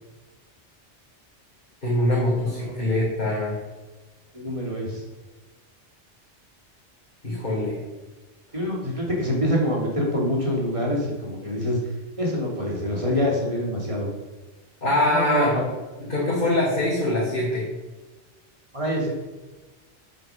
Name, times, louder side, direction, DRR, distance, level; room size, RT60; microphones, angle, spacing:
voice 1, 1.8-3.6 7.2-7.8 14.8-15.6 16.1-17.6, left 1 dB, 45° left, -8 dB, 3.9 m, -23 dB
voice 2, 4.3-5.0 8.5-14.1 15.1-15.7 18.7-19.1, equal, 25° right, -3 dB, 3.2 m, -26 dB
9.0 x 8.2 x 6.1 m, 1.2 s
omnidirectional pair, 1.2 m